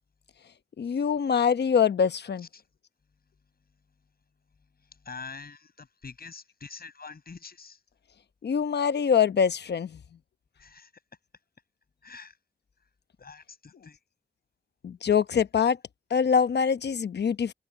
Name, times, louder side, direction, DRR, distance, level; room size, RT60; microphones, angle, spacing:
voice 1, 0.8-2.5 8.4-10.0 14.8-15.8 16.1-17.5, left 7 dB, 80° left, 1.0 m, -24 dB
voice 2, 5.0-7.8 10.6-10.9 12.0-12.3 13.2-14.0, left 5 dB, 65° left, 7.7 m, -45 dB
cardioid pair, 60°, 17 cm